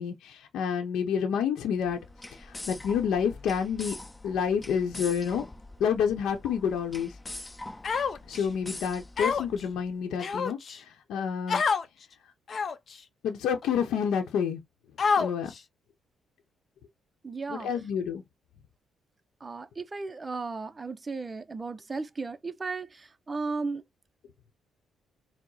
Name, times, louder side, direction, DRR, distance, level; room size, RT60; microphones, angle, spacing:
voice 1, 0.0-2.0 2.3-4.0 4.2-5.5 5.8-7.1 8.3-11.6 13.2-14.6 15.2-15.5 17.5-18.2, left 7 dB, 80° left, 0.8 m, -29 dB
sound 1, 1.8-9.9, left 2 dB, 15° left, 0.9 m, -44 dB
Human voice, 7.8-8.4 9.2-9.6 10.2-10.8 11.5-11.8 12.5-12.9 13.6-13.7 15.0-15.6, left 5 dB, 50° left, 0.6 m, -27 dB
voice 2, 17.2-17.7 19.4-23.8, right 4 dB, 25° right, 0.5 m, -35 dB
4.7 x 2.1 x 4.0 m
cardioid pair, 90°, 0 cm